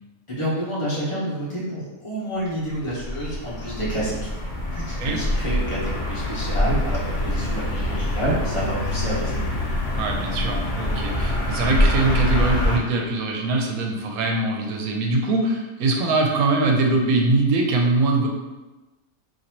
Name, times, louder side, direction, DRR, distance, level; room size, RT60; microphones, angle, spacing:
voice 1, 0.3-9.4, right 1 dB, 25° left, -7 dB, 1.0 m, -29 dB
sound 1, 2.5-12.8, left 1 dB, 50° left, 0.6 m, -25 dB
voice 2, 10.0-18.3, right 2 dB, 85° right, 1 dB, 1.1 m, -22 dB
3.9 x 2.8 x 2.9 m, 1.1 s
omnidirectional pair, 1.5 m